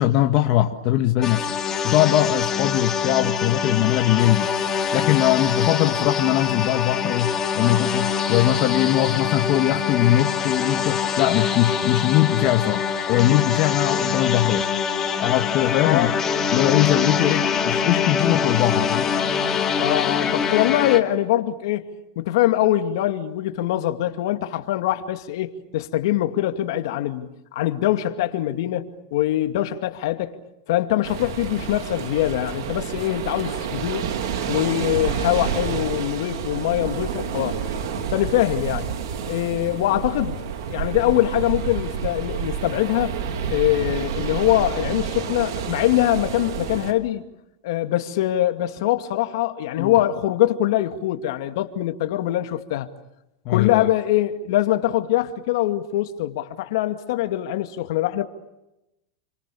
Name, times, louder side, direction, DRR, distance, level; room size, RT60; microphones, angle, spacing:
voice 1, 0.0-1.5 1.8-14.7 15.2-16.1 16.5-19.1 49.8-50.0 53.4-53.9, left 14 dB, 45° left, 1.7 m, -21 dB
sound 1, 1.2-21.0, left 6 dB, 20° left, 2.4 m, -24 dB
voice 2, 15.8-16.2 19.8-21.9 22.2-30.3 30.7-34.1 34.5-37.6 38.1-38.9 39.3-43.2 43.5-47.2 47.6-52.9 53.5-58.2, left 14 dB, 65° left, 2.4 m, -23 dB
sound 2, 31.0-46.9, right 7 dB, 70° right, 3.4 m, -29 dB
30.0 x 25.5 x 7.1 m
supercardioid pair, 150°, 2 cm